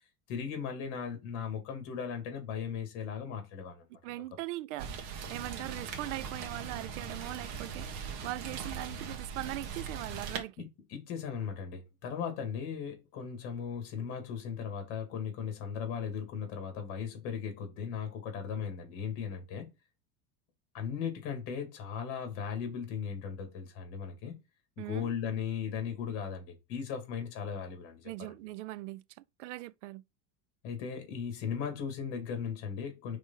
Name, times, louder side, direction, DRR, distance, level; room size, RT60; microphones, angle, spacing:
voice 1, 0.3-4.2 10.6-19.7 20.7-24.3 24.8-28.3 30.6-33.2, left 7 dB, 45° left, 2.3 m, -37 dB
voice 2, 4.0-10.7 24.8-25.1 28.0-30.0, right 17 dB, 75° right, 0.5 m, -41 dB
Rain, 4.8-10.4, right 6 dB, 50° right, 1.5 m, -40 dB
5.0 x 3.9 x 5.5 m
supercardioid pair, 165°, 36 cm